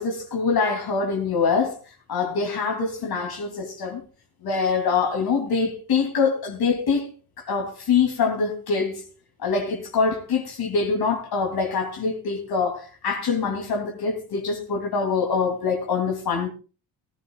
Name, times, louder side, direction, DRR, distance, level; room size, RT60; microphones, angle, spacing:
voice 1, 0.0-1.8 2.1-4.0 4.4-7.1 7.4-9.0 9.4-16.5, left 5 dB, 60° left, 3.1 m, -24 dB
18.0 x 15.0 x 2.4 m
cardioid pair, 120°, 43 cm